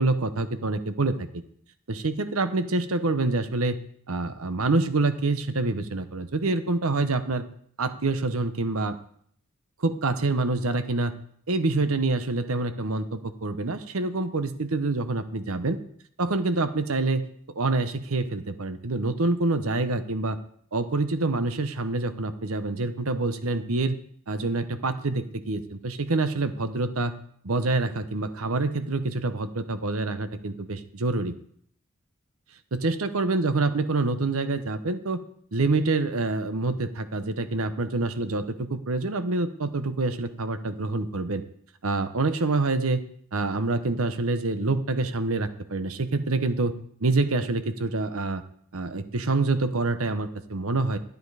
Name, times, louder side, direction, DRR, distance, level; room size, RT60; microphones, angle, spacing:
voice 1, 0.0-1.4 1.9-3.8 4.1-7.4 7.8-9.0 9.8-11.1 11.5-15.8 16.2-17.3 17.6-20.4 20.7-24.0 24.3-27.1 27.4-31.3 32.7-35.2 35.5-41.4 41.8-43.0 43.3-46.7 47.0-48.4 48.7-51.0, right 3 dB, 70° right, 11 dB, 0.9 m, -26 dB
12.0 x 9.6 x 4.9 m, 0.63 s
head